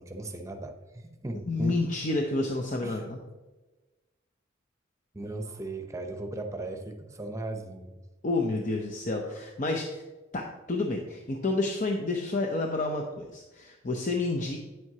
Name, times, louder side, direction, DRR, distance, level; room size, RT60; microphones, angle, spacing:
voice 1, 0.0-1.8 2.8-3.1 5.1-8.0 9.2-9.3, right 2 dB, 15° right, 4 dB, 0.8 m, -37 dB
voice 2, 1.5-3.2 8.2-10.0 10.3-14.6, left 2 dB, 40° left, 1 dB, 0.7 m, -29 dB
9.6 x 7.7 x 2.8 m, 1.2 s
head